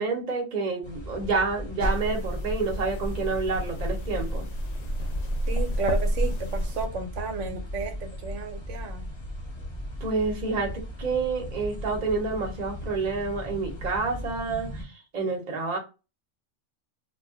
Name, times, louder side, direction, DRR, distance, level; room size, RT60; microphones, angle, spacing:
voice 1, 0.0-4.4 10.0-10.7 11.0-15.8, right 4 dB, 40° right, 0.8 m, -28 dB
sound 1, 0.8-14.8, equal, 25° left, 0.8 m, -38 dB
sound 2, 1.8-6.9, equal, 80° left, 0.3 m, -29 dB
voice 2, 5.5-9.1, right 4 dB, 70° right, 1.0 m, -32 dB
2.3 x 2.1 x 3.5 m
omnidirectional pair, 1.3 m